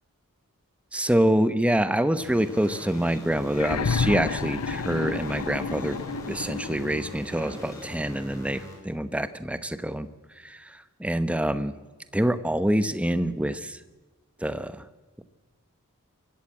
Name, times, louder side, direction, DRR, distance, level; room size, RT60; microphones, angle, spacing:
voice 1, 0.9-6.0 6.3-10.1 10.4-11.7 12.1-13.8 14.4-14.8, right 1 dB, 5° right, 12 dB, 0.9 m, -26 dB
sound 1, 2.2-8.7, left 1 dB, 15° left, 7.0 m, -42 dB
sound 2, 3.5-7.3 8.5-8.6, left 5 dB, 80° left, 0.6 m, -30 dB
23.5 x 14.5 x 8.8 m, 1.3 s
head